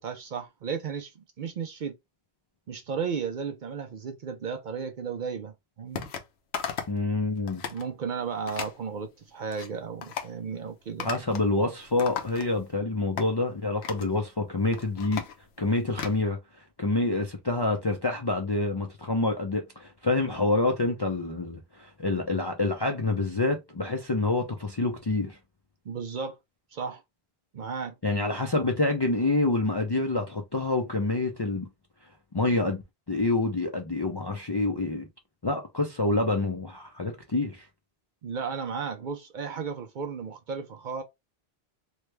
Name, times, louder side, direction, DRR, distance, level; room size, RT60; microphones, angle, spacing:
voice 1, 0.0-2.0 2.7-6.1 7.7-11.1 25.9-26.4 26.7-27.0 27.5-27.9 38.2-41.0, right 6 dB, 60° right, 0.6 m, -34 dB
sound 1, 6.0-6.3 6.5-7.0 7.4-7.8 8.5-8.8 9.3-9.7 10.0-10.3 11.0-11.5 11.8-12.7 13.2-13.3 13.8-14.1 14.6-16.2, left 7 dB, 80° left, 0.9 m, -36 dB
voice 2, 6.9-7.6 11.0-15.2 15.6-16.4 16.8-25.4 28.0-31.7 32.3-32.8 33.1-35.0 35.4-37.7, left 2 dB, 35° left, 0.4 m, -27 dB
3.1 x 2.2 x 3.2 m
omnidirectional pair, 1.1 m